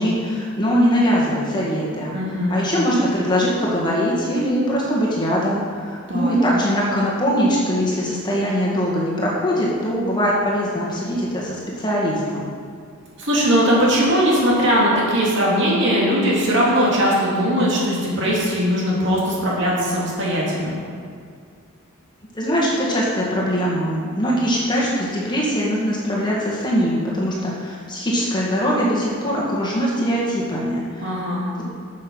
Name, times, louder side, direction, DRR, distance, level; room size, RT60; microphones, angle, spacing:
voice 1, 0.0-2.2 2.5-12.5 22.3-31.3, equal, 20° left, -5 dB, 1.8 m, -21 dB
voice 2, 2.1-2.6 6.1-6.3 13.2-20.7 31.0-31.4, equal, 55° right, -5 dB, 2.9 m, -19 dB
9.6 x 6.6 x 6.2 m, 2.2 s
head